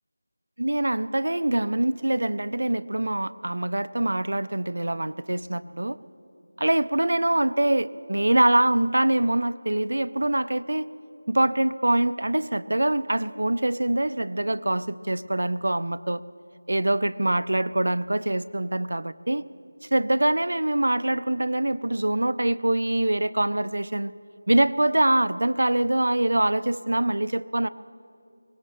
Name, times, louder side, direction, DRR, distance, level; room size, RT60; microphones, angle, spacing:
voice 1, 0.6-6.0 6.6-10.9 11.3-16.2 16.7-19.4 19.8-24.1 24.5-27.7, right 1 dB, 70° right, 15 dB, 0.5 m, -24 dB
23.0 x 19.0 x 3.1 m, 2.7 s
figure-of-eight pair, 180°, 0 cm